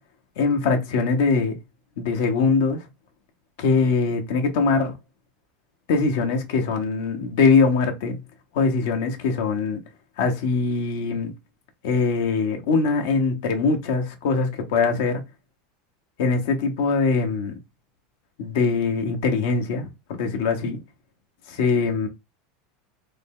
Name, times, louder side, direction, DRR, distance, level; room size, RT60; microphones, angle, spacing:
voice 1, 0.4-1.5 2.0-2.9 3.6-4.9 5.9-8.2 8.5-9.8 10.2-11.3 11.8-15.2 16.2-17.5 18.4-19.9 20.2-20.8 21.5-22.1, left 4 dB, 75° left, 1.0 m, -22 dB
3.7 x 2.1 x 3.6 m
supercardioid pair, 130°, 0 cm